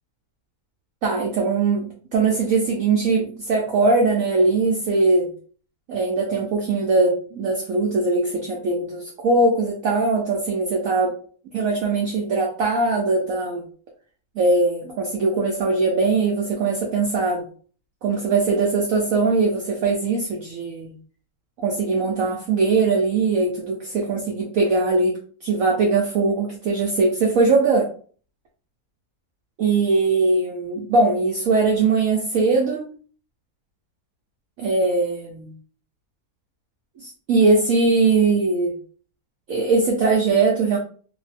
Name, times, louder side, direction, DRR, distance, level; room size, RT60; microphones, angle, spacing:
voice 1, 1.0-5.3 5.9-11.2 11.5-13.6 14.4-17.5 18.0-20.9 21.6-27.9 29.6-32.8 34.6-35.5 37.0-38.8 39.5-40.8, right 3 dB, 70° right, -1 dB, 0.8 m, -21 dB
2.8 x 2.0 x 3.2 m, 0.43 s
omnidirectional pair, 1.9 m